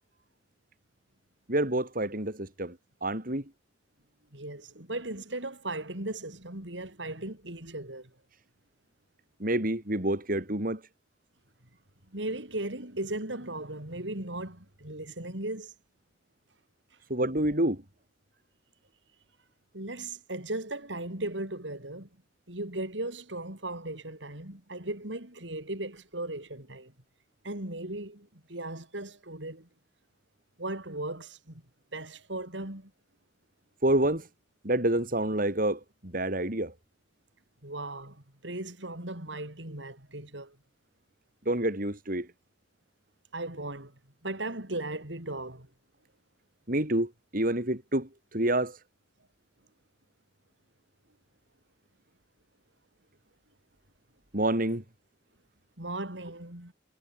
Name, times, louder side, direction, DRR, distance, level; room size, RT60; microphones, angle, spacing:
voice 1, 1.5-2.7 3.0-3.4 9.4-10.8 17.1-17.8 33.8-34.3 34.6-36.7 41.4-42.3 46.7-48.8 54.3-54.8, right 1 dB, 50° right, 5.0 m, -28 dB
voice 2, 4.3-8.1 12.1-15.7 19.7-22.1 22.5-26.9 27.4-29.7 30.6-31.6 31.9-32.9 37.6-40.6 43.3-43.9 44.2-45.7 55.8-56.7, right 2 dB, 85° right, 5.9 m, -37 dB
head